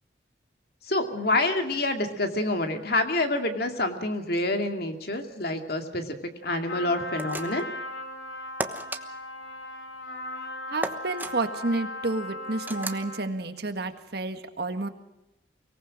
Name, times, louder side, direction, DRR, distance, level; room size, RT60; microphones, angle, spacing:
voice 1, 0.9-6.2 6.4-7.6, left 2 dB, 55° left, 5 dB, 2.4 m, -27 dB
Trumpet, 6.7-13.4, left 1 dB, 90° left, 4.6 m, -38 dB
sound 1, 7.2-7.7 8.6-9.0 10.8-11.3 12.7-13.1, right 2 dB, 10° right, 1.1 m, -33 dB
voice 2, 10.7-14.9, right 2 dB, 60° right, 8 dB, 1.7 m, -30 dB
24.0 x 18.5 x 6.3 m, 0.94 s
head